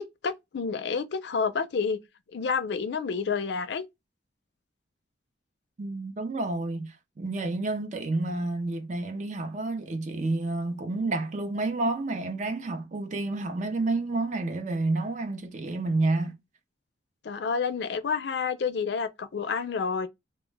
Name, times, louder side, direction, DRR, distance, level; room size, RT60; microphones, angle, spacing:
voice 1, 0.0-2.0 2.3-3.8 17.2-20.1, left 5 dB, 65° left, 0.4 m, -29 dB
voice 2, 5.8-16.4, right 2 dB, 40° right, 0.5 m, -29 dB
2.1 x 2.1 x 3.2 m
head